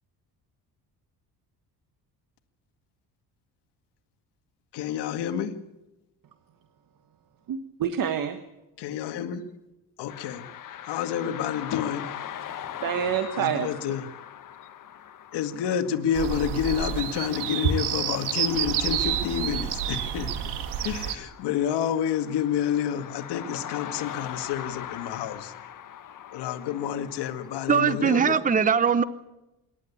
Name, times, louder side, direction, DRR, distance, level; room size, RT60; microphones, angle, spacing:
voice 1, 4.7-5.6 8.8-9.5 10.0-10.5 10.8-12.1 13.4-14.1 15.3-20.5 20.8-25.5 26.3-28.4, left 9 dB, 85° left, 7 dB, 2.0 m, -29 dB
voice 2, 7.5-8.4 12.8-13.9, right 8 dB, 55° right, 9 dB, 1.5 m, -28 dB
sound 1, 10.1-28.0, left 10 dB, 55° left, 1.6 m, -42 dB
sound 2, 16.1-21.2, right 9 dB, 80° right, 2.0 m, -29 dB
voice 3, 27.7-29.0, right 6 dB, 20° right, 15 dB, 0.8 m, -21 dB
26.5 x 12.0 x 8.5 m, 0.98 s
cardioid pair, 125°, 40 cm